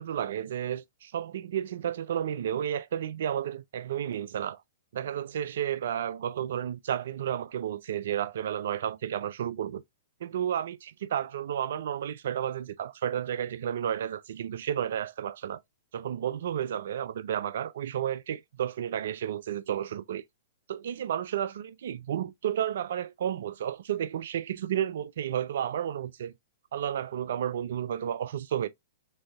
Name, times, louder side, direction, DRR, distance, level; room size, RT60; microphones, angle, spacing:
voice 1, 0.0-4.6 4.9-9.8 10.2-15.6 15.9-20.2 20.7-26.3 26.7-28.7, right 10 dB, 65° right, 0.3 m, -32 dB
6.2 x 2.6 x 2.3 m
hypercardioid pair, 115°, 0 cm